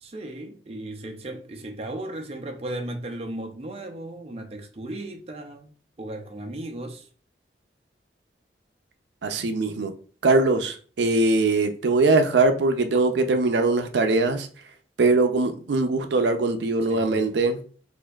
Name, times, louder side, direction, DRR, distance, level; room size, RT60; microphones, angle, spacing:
voice 1, 0.0-7.1 16.9-17.4, right 1 dB, 35° right, 0.5 m, -36 dB
voice 2, 9.2-9.9 10.2-14.5 15.0-17.6, right 3 dB, 85° right, 0.5 m, -21 dB
4.3 x 2.6 x 2.2 m
head